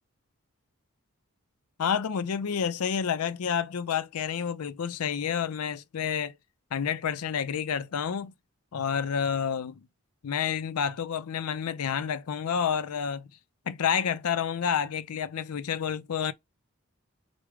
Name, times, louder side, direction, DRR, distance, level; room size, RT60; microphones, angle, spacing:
voice 1, 1.8-6.3 6.7-8.3 8.7-9.8 10.2-13.3 13.7-16.3, left 7 dB, 90° left, 0.5 m, -29 dB
4.8 x 2.1 x 3.2 m
head